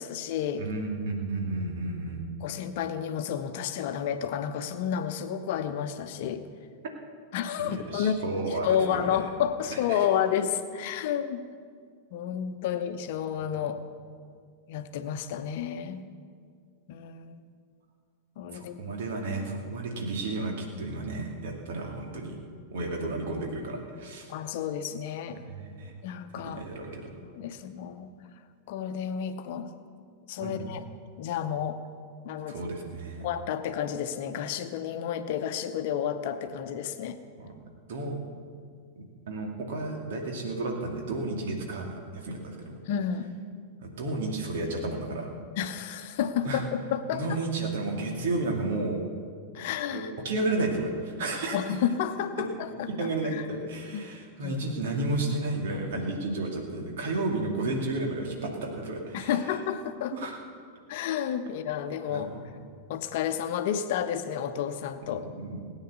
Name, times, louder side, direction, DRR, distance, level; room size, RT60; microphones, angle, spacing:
voice 1, 0.0-0.6 2.4-6.5 7.3-8.2 8.6-11.4 12.1-13.8 14.7-16.0 16.9-17.4 18.4-18.9 24.3-25.4 26.0-26.6 27.2-28.1 28.7-29.7 30.3-30.8 31.2-31.8 32.2-32.6 33.2-37.2 42.9-43.3 45.6-47.4 49.5-50.1 51.5-52.9 53.3-53.4 53.9-54.1 54.4-54.6 59.1-60.1 60.9-62.3 62.9-65.2, left 9 dB, 50° left, 9 dB, 0.9 m, -31 dB
voice 2, 0.6-2.2 7.7-9.2 9.9-10.0 18.5-22.4 22.7-24.3 25.3-25.9 26.4-27.1 30.4-30.7 32.5-33.3 37.4-37.5 37.9-38.2 39.0-42.8 43.8-45.3 46.4-46.6 47.1-49.0 49.6-49.7 49.9-51.7 52.7-59.4 60.1-60.4 62.1-62.5 65.2-65.6, right 2 dB, 55° right, 1 dB, 2.4 m, -32 dB
18.0 x 9.1 x 6.9 m, 2.2 s
figure-of-eight pair, 90°, 0 cm